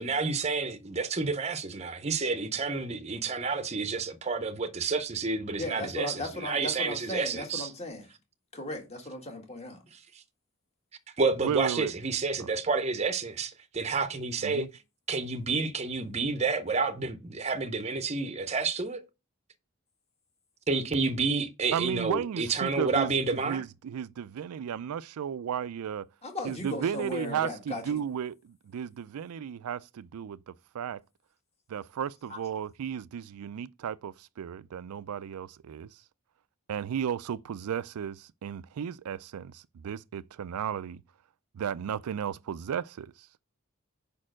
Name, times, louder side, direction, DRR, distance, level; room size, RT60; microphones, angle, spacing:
voice 1, 0.0-7.7 9.9-10.0 11.2-14.7 15.1-19.0 20.7-23.6, right 4 dB, 30° right, 0.6 m, -30 dB
voice 2, 5.6-8.1 8.5-9.8 26.2-28.0 32.3-32.4, left 2 dB, 30° left, 1.6 m, -37 dB
voice 3, 11.4-11.9 14.4-14.7 21.7-26.1 26.4-31.0 31.7-35.9 36.7-41.0 41.5-43.1, right 8 dB, 90° right, 0.4 m, -34 dB
5.3 x 4.3 x 6.1 m
head